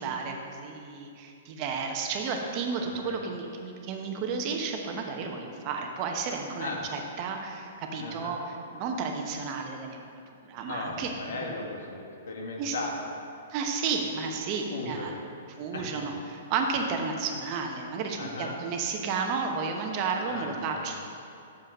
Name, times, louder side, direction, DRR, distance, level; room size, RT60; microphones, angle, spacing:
voice 1, 0.0-10.0 10.3-11.1 12.6-12.8 13.5-15.1 15.6-21.0, right 5 dB, 35° right, 3 dB, 0.9 m, -32 dB
voice 2, 2.8-3.2 6.6-6.9 8.0-8.4 10.7-13.1 14.7-15.2 15.7-16.2 18.2-18.6 20.3-21.0, left 2 dB, 75° left, 0 dB, 1.5 m, -37 dB
6.9 x 5.5 x 6.1 m, 2.6 s
hypercardioid pair, 145°, 0 cm